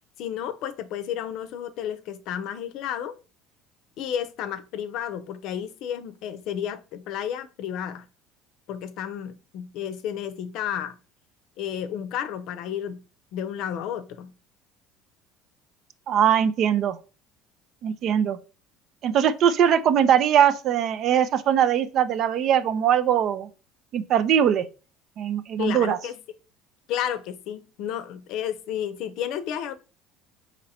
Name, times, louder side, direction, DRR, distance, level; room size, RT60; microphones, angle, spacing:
voice 1, 0.2-3.1 4.0-8.1 8.7-11.0 11.6-13.0 13.3-14.3 25.6-26.2 26.9-29.7, left 9 dB, 65° left, 0.5 m, -32 dB
voice 2, 16.1-17.0 17.8-18.4 19.0-23.5 23.9-24.6 25.2-26.0, right 9 dB, 55° right, 0.5 m, -21 dB
4.0 x 3.0 x 4.1 m
supercardioid pair, 85°, 0 cm